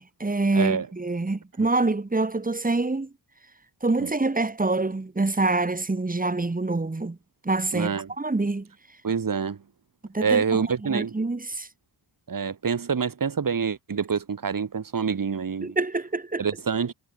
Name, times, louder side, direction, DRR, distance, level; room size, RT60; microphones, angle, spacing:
voice 1, 0.0-3.1 3.8-7.2 7.4-8.7 10.1-10.6 10.9-11.7 15.6-16.4, right 3 dB, 20° right, 2.4 m, -26 dB
voice 2, 0.5-0.9 1.6-1.7 4.0-4.1 7.7-8.1 9.0-9.6 10.2-11.1 12.3-15.8 16.4-16.9, right 6 dB, 45° right, 3.2 m, -26 dB
cardioid pair, 70°, 44 cm